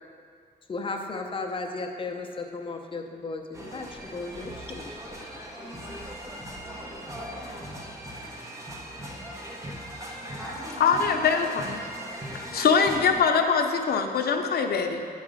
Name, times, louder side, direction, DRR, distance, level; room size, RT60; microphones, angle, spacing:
voice 1, 0.7-4.9, left 3 dB, 30° left, 2 dB, 0.6 m, -35 dB
sound 1, 3.5-13.2, equal, 20° right, 0.7 m, -39 dB
voice 2, 5.6-6.9 7.3-9.5 10.3-11.0 12.4-12.8, left 1 dB, 5° left, -7 dB, 1.6 m, -47 dB
voice 3, 10.8-11.8 12.5-15.0, left 5 dB, 70° left, 4 dB, 0.6 m, -23 dB
9.6 x 4.1 x 4.9 m, 2.2 s
wide cardioid pair, 180°, 16 cm